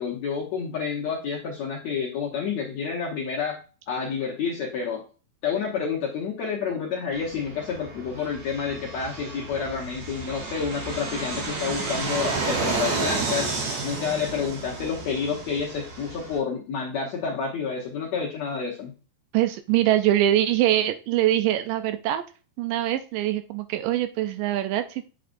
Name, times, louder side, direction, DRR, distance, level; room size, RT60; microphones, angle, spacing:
voice 1, 0.0-3.6 3.9-5.0 5.4-13.5 13.8-18.9, left 6 dB, 65° left, -2 dB, 1.9 m, -29 dB
Fixed-wing aircraft airplane, 7.1-16.4, right 4 dB, 55° right, 2.9 m, -31 dB
voice 2, 19.3-22.2 22.6-25.0, right 13 dB, 80° right, 9 dB, 2.1 m, -23 dB
8.4 x 6.6 x 2.5 m, 0.36 s
omnidirectional pair, 4.2 m